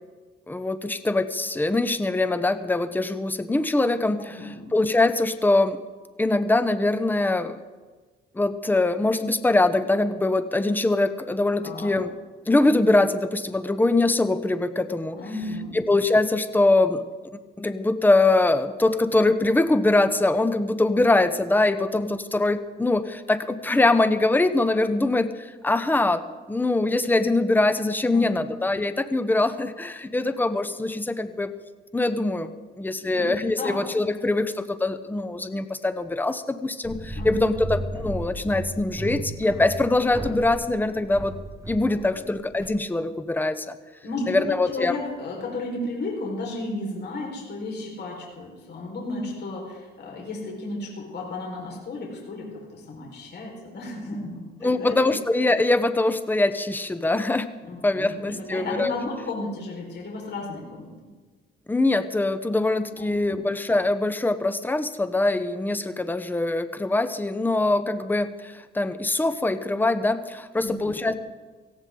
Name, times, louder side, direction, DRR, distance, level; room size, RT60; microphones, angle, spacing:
voice 1, 0.5-5.8 6.2-7.6 8.3-12.1 12.5-15.2 15.7-17.0 17.6-26.2 26.5-31.5 31.9-32.5 32.8-41.3 41.7-43.7 44.3-45.0 54.6-57.5 57.8-58.9 61.7-71.1, left 2 dB, 10° left, 11 dB, 0.9 m, -23 dB
voice 2, 4.3-4.8 11.6-11.9 15.1-15.8 28.1-28.3 33.0-33.8 37.1-37.7 42.1-42.3 44.0-55.1 57.6-60.9 63.3-63.5 70.6-71.1, left 2 dB, 60° left, -2 dB, 4.8 m, -34 dB
sound 1, 36.8-42.7, right 2 dB, 15° right, 2.0 m, -35 dB
18.0 x 16.0 x 3.9 m, 1.3 s
cardioid pair, 90°, 20 cm